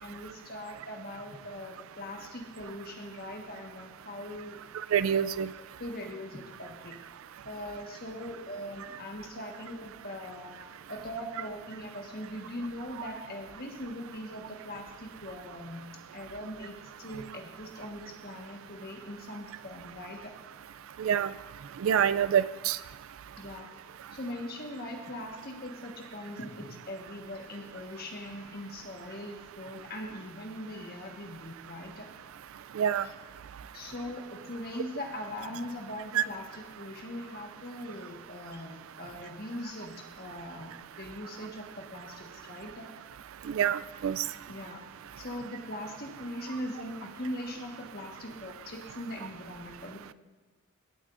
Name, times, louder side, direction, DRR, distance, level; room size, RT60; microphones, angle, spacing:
voice 1, 0.0-4.6 5.2-5.3 5.6-7.0 7.4-10.6 10.9-15.9 16.1-20.3 23.4-23.7 24.1-32.1 33.0-33.1 33.7-42.9 44.5-44.8 45.2-50.1, left 1 dB, 50° left, 2 dB, 1.4 m, -41 dB
voice 2, 4.7-5.5 21.0-21.3 21.8-22.8 32.7-33.1 36.1-36.2 43.4-44.2, right 9 dB, 75° right, 15 dB, 0.3 m, -26 dB
16.5 x 8.8 x 2.5 m, 1.3 s
head